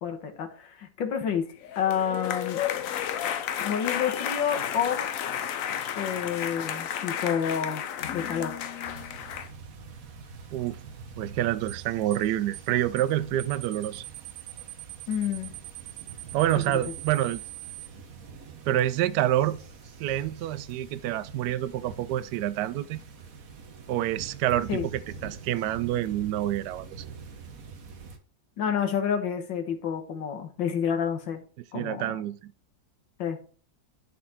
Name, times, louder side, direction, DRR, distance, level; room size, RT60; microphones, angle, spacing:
voice 1, 0.0-1.5 1.8-2.6 3.6-5.1 6.0-7.8 8.1-8.5 15.1-15.5 24.7-24.9 28.6-31.4 31.7-32.1 33.2-33.4, left 8 dB, 90° left, 2.0 m, -29 dB
sound 1, 1.6-9.5, left 9 dB, 65° left, 0.9 m, -32 dB
sound 2, 8.8-28.2, right 5 dB, 50° right, 1.5 m, -45 dB
voice 2, 11.2-14.0 16.3-17.4 18.7-19.6 20.0-23.0 23.9-27.0 31.7-32.5, right 13 dB, 75° right, 1.1 m, -27 dB
sound 3, 11.7-11.8 12.1-12.3 12.5-12.7 13.0-13.1 13.4-17.9, right 16 dB, 90° right, 0.7 m, -42 dB
11.0 x 4.3 x 4.2 m
omnidirectional pair, 2.0 m